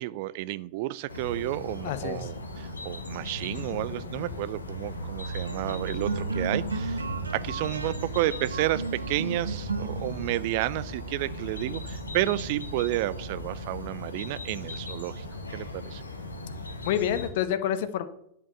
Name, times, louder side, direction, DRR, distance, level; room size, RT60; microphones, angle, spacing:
voice 1, 0.0-7.0 7.3-15.3 15.5-16.0, right 16 dB, 50° right, 18 dB, 0.4 m, -31 dB
sound 1, 1.1-17.3, left 1 dB, 80° left, 1.6 m, -37 dB
voice 2, 1.8-2.3 16.8-18.1, left 10 dB, 50° left, 12 dB, 1.0 m, -28 dB
sound 2, 4.5-14.1, right 5 dB, 75° right, 0.9 m, -37 dB
10.5 x 5.8 x 7.0 m, 0.73 s
figure-of-eight pair, 90°, 0 cm